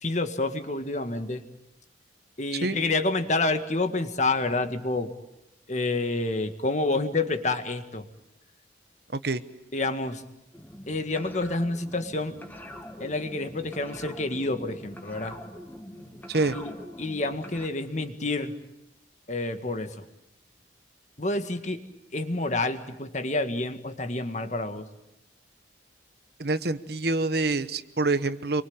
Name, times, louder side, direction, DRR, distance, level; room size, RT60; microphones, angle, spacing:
voice 1, 0.0-1.4 2.4-5.1 5.7-8.1 9.7-10.2 10.9-12.3 13.0-15.4 16.5-16.7 17.0-18.5 19.3-19.9 21.2-21.8 22.1-24.9, left 2 dB, 40° left, 8 dB, 1.9 m, -28 dB
sound 1, 10.5-17.7, left 1 dB, 10° left, 2.3 m, -44 dB
voice 2, 26.4-28.6, right 3 dB, 55° right, 12 dB, 1.1 m, -26 dB
27.5 x 24.0 x 8.9 m, 0.84 s
head